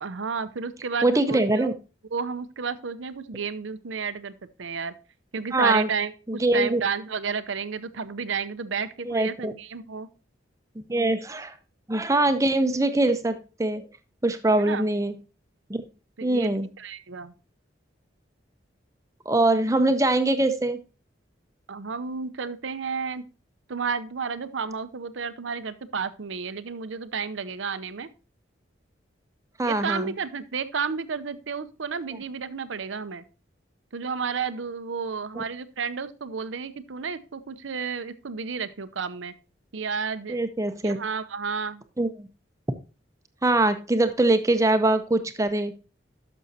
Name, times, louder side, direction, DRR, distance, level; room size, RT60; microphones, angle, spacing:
voice 1, 0.0-1.7 2.1-4.9 5.3-10.1 14.5-14.9 16.2-17.3 21.7-23.3 23.7-28.1 29.6-33.2 33.9-39.3 39.7-40.4 40.8-41.8, right 5 dB, 90° right, 14 dB, 0.7 m, -31 dB
voice 2, 1.0-1.7 5.5-5.9 6.3-6.8 9.0-9.5 10.9-11.5 11.9-13.8 14.2-15.2 15.7-15.8 16.2-16.7 19.3-20.8 29.6-30.1 35.4-35.5 40.3-41.0 42.0-42.3 43.4-45.7, right 2 dB, 15° right, 9 dB, 0.6 m, -23 dB
12.0 x 6.2 x 2.8 m, 0.33 s
head